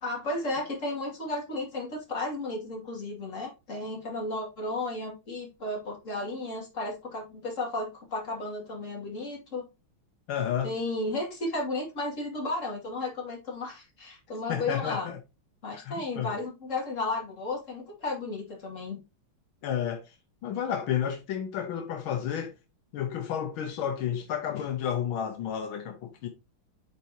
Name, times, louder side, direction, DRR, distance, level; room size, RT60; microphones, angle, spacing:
voice 1, 0.0-9.7 10.6-15.1 15.6-19.0, left 2 dB, 35° left, 2.7 m, -33 dB
voice 2, 10.3-10.7 14.5-15.2 15.7-16.3 19.6-20.1 20.4-22.5 22.9-26.3, left 9 dB, 80° left, 1.6 m, -31 dB
9.0 x 4.3 x 2.8 m
omnidirectional pair, 2.3 m